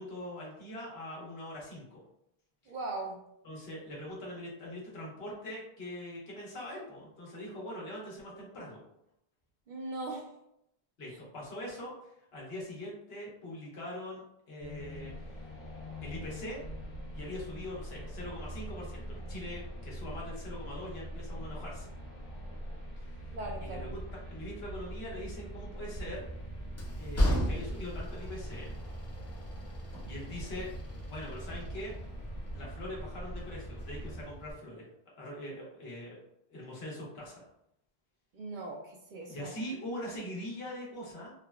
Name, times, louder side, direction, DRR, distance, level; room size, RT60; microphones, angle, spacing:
voice 1, 0.0-2.0 2.6-2.7 3.4-8.8 11.0-15.5 16.0-16.6 17.1-21.9 23.0-26.3 27.0-28.7 30.1-30.7 31.1-31.9 32.5-34.9 35.2-36.2 36.5-37.5 39.3-41.3, left 1 dB, 75° left, -4 dB, 1.2 m, -42 dB
voice 2, 2.7-3.2 9.7-10.3 23.3-23.9 38.3-39.5, right 2 dB, 60° right, 0 dB, 0.6 m, -39 dB
sound 1, 14.6-34.3, equal, 45° left, 1.1 m, -43 dB
Train, 25.9-34.5, equal, 25° left, 0.4 m, -37 dB
3.5 x 2.1 x 2.3 m, 0.76 s
omnidirectional pair, 1.1 m